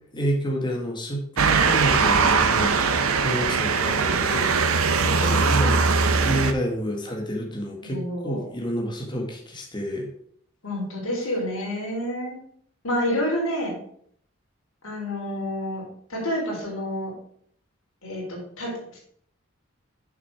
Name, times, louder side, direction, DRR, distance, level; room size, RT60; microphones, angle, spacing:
voice 1, 0.1-2.8 3.2-5.8 6.2-10.1, right 1 dB, 20° left, 1 dB, 1.4 m, -29 dB
Motor vehicle (road) / Siren, 1.4-6.5, right 4 dB, 85° right, 0.7 m, -21 dB
voice 2, 7.8-8.4 10.6-12.4 12.8-13.8 14.8-17.1 18.0-19.0, equal, 75° left, -3 dB, 3.5 m, -29 dB
6.9 x 6.0 x 4.7 m, 0.63 s
head